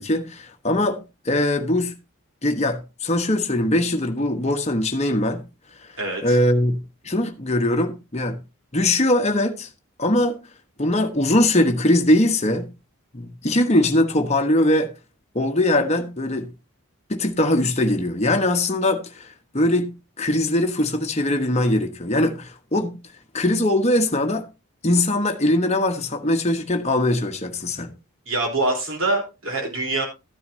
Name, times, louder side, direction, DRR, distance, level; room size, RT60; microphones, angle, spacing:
voice 1, 0.0-1.9 2.4-5.4 6.2-6.8 7.0-8.4 8.7-9.7 10.0-10.4 10.8-12.7 13.1-14.9 15.3-16.5 17.1-19.3 19.5-23.0 23.3-24.4 24.8-27.9, left 1 dB, 30° left, 1.1 m, -21 dB
voice 2, 6.0-6.4 28.3-30.0, right 2 dB, 60° right, 3.8 m, -24 dB
13.5 x 9.4 x 2.8 m
head